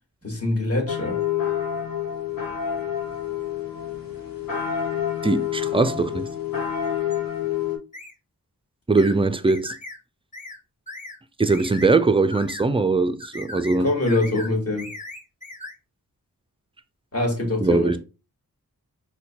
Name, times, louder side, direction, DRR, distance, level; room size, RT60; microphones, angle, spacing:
voice 1, 0.2-1.2 13.8-14.9 17.1-18.0, left 2 dB, 40° left, 1.4 m, -24 dB
sound 1, 0.9-7.8, left 9 dB, 60° left, 0.9 m, -28 dB
voice 2, 5.2-6.3 8.9-9.7 11.4-13.9 17.6-18.0, right 3 dB, 15° right, 0.3 m, -21 dB
sound 2, 7.9-8.1 9.0-9.2 9.5-10.0 10.3-10.6 10.9-11.2 11.5-11.9 12.3-12.6 13.2-13.8 14.1-14.5 14.8-15.7, left 2 dB, 20° left, 0.8 m, -38 dB
4.2 x 2.2 x 2.8 m
cardioid pair, 45°, 38 cm